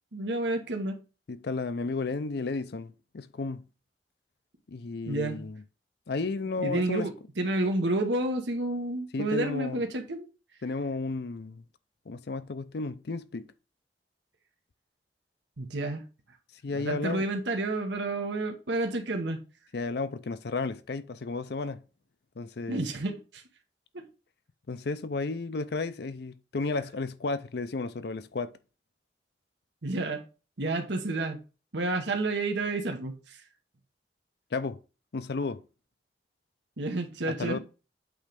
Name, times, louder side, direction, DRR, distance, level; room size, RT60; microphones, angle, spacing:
voice 1, 0.1-1.0 5.1-5.4 6.6-10.2 15.6-16.0 16.8-19.4 22.7-23.4 29.8-30.2 30.6-31.4 31.7-33.1 36.8-37.6, right 2 dB, 85° right, 1.2 m, -30 dB
voice 2, 1.3-3.7 4.7-5.6 6.1-7.1 9.1-9.8 10.6-11.6 12.1-13.5 16.6-17.2 19.7-21.8 22.4-22.9 24.7-28.5 34.5-34.8 35.1-35.6 37.3-37.6, left 3 dB, 65° left, 0.5 m, -33 dB
8.4 x 3.2 x 5.1 m
head